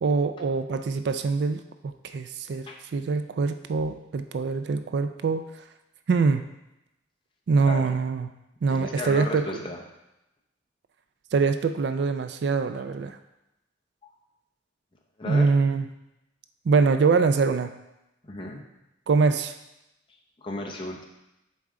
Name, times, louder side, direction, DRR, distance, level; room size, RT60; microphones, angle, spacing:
voice 1, 0.0-2.7 2.9-5.4 6.1-6.4 7.5-8.3 8.6-9.5 11.3-13.2 15.3-15.9 16.7-17.7 19.1-19.5, right 4 dB, 60° right, 9 dB, 0.3 m, -24 dB
voice 2, 8.7-9.8 12.7-12.8 14.0-14.1 15.2-15.5 18.2-18.6 20.4-21.0, left 2 dB, 25° left, 0 dB, 0.7 m, -34 dB
7.3 x 4.5 x 3.6 m, 0.91 s
head